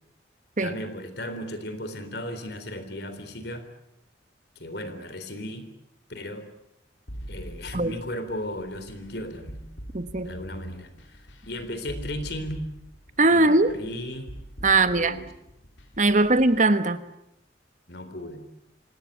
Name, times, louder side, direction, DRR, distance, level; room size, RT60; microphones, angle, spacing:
voice 1, 0.6-3.7 4.6-5.6 6.1-6.5 7.3-9.7 10.2-12.6 13.3-14.3 14.7-15.2 17.9-18.4, left 1 dB, 60° left, 10 dB, 3.8 m, -36 dB
sound 1, 7.1-16.6, equal, 85° left, 4.3 m, -43 dB
voice 2, 9.9-10.3 13.2-13.7 14.6-15.2 16.0-17.0, right 2 dB, 40° right, 12 dB, 1.3 m, -20 dB
27.0 x 18.0 x 9.6 m, 0.84 s
head